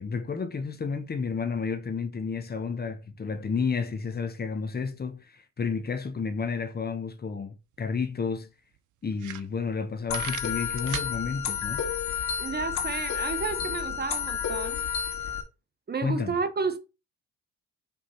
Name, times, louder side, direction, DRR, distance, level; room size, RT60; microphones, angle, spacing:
voice 1, 0.0-8.5 9.0-11.8 16.0-16.4, left 5 dB, 30° left, 1.0 m, -31 dB
sound 1, 7.7-7.8 8.1-8.2 8.7-8.8 9.1-9.8 10.1-11.1, right 12 dB, 80° right, 0.7 m, -37 dB
sound 2, 10.1-15.4, left 8 dB, 70° left, 2.1 m, -31 dB
voice 2, 12.4-14.9 15.9-16.8, right 4 dB, 35° right, 1.0 m, -31 dB
5.1 x 3.6 x 5.6 m
cardioid pair, 90°, 30 cm